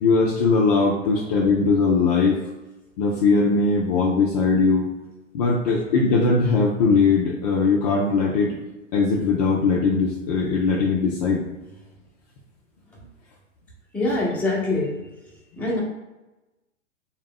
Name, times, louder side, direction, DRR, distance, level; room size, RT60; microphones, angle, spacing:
voice 1, 0.0-2.4 3.0-4.9 5.3-8.5 8.9-11.4, left 4 dB, 35° left, -2 dB, 0.5 m, -20 dB
voice 2, 13.9-15.0 15.6-15.8, left 2 dB, 5° left, -6 dB, 0.8 m, -24 dB
3.5 x 2.3 x 3.7 m, 1.1 s
figure-of-eight pair, 105°, 38 cm